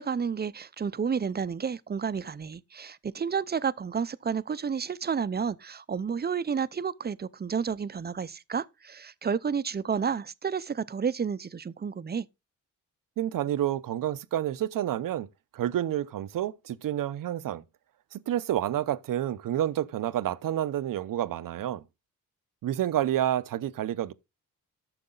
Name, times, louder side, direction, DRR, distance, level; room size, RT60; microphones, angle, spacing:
voice 1, 0.0-12.3, right 6 dB, 30° right, 0.6 m, -31 dB
voice 2, 13.2-15.3 15.5-17.6 18.1-21.8 22.6-24.1, right 11 dB, 70° right, 0.7 m, -29 dB
12.0 x 6.7 x 3.9 m
cardioid pair, 75°, 34 cm